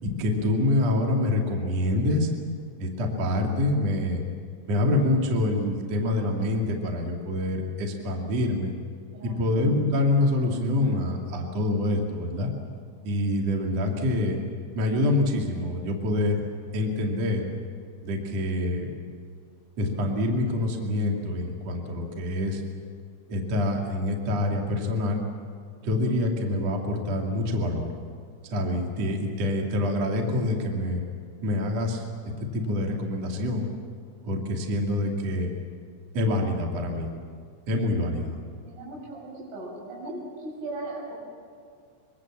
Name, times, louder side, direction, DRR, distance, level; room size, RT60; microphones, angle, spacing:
voice 1, 0.0-2.3 2.8-4.2 4.7-8.7 9.2-12.5 13.0-14.4 14.7-16.4 16.7-17.5 18.0-18.9 19.8-22.6 23.3-25.2 25.8-27.9 28.5-31.0 31.4-32.1 32.5-33.7 34.2-35.5 36.1-37.1 37.7-38.4 39.1-39.2, left 1 dB, 40° right, 1 dB, 2.7 m, -26 dB
voice 2, 38.6-41.1, right 2 dB, 85° right, -3 dB, 10.0 m, -38 dB
25.0 x 23.5 x 7.4 m, 2.2 s
omnidirectional pair, 5.7 m